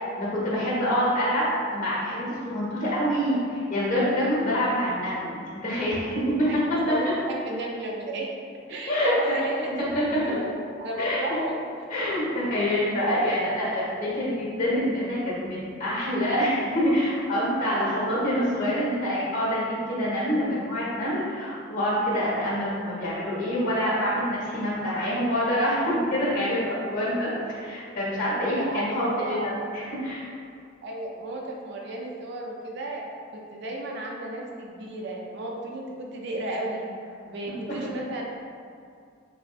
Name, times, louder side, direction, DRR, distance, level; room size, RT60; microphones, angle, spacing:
voice 1, 0.2-1.5 1.7-6.6 8.9-9.3 9.8-10.2 11.0-11.4 11.9-30.3, equal, 45° left, -7 dB, 1.1 m, -26 dB
voice 2, 6.9-8.3 8.7-10.4 10.8-11.6 28.6-29.7 30.8-33.0 33.3-36.8 37.2-38.2, right 1 dB, 60° right, -1 dB, 0.4 m, -33 dB
3.4 x 2.5 x 2.3 m, 2.3 s
head